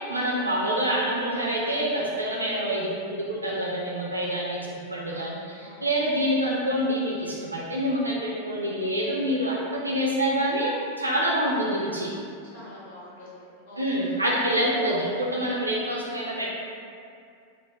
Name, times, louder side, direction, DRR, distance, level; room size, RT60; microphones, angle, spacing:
voice 1, 0.1-10.7 11.0-12.1 13.8-16.5, equal, 80° right, -4 dB, 0.6 m, -26 dB
voice 2, 5.1-5.9 6.2-6.5 12.5-14.4, left 1 dB, 55° left, -9 dB, 1.4 m, -46 dB
3.8 x 2.1 x 3.4 m, 2.3 s
figure-of-eight pair, 90°, 0 cm